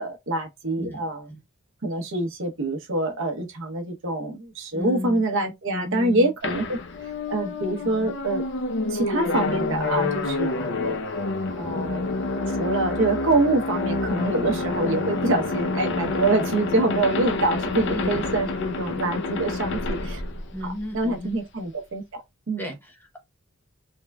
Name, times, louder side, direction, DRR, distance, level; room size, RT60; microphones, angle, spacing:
voice 1, 0.0-1.2 1.8-6.8 7.3-8.4 8.9-10.5 10.8-11.0 11.6-20.2 20.6-22.7, right 2 dB, 65° right, 0.9 m, -25 dB
voice 2, 4.7-5.2 5.7-6.3 7.6-8.1 9.9-11.0 17.8-18.2 20.5-21.4 22.6-23.2, left 1 dB, 10° left, 0.9 m, -35 dB
sound 1, 6.4-21.2, left 3 dB, 60° left, 0.6 m, -28 dB
3.6 x 3.4 x 2.2 m
head